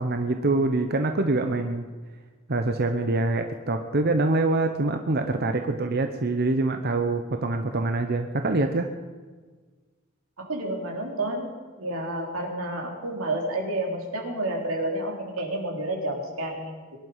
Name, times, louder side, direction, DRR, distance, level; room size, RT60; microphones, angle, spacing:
voice 1, 0.0-1.8 2.5-8.9, right 2 dB, 50° right, 6 dB, 0.9 m, -25 dB
voice 2, 10.4-11.5 11.8-17.0, right 1 dB, 90° right, 1 dB, 3.6 m, -30 dB
22.5 x 11.5 x 5.6 m, 1.4 s
head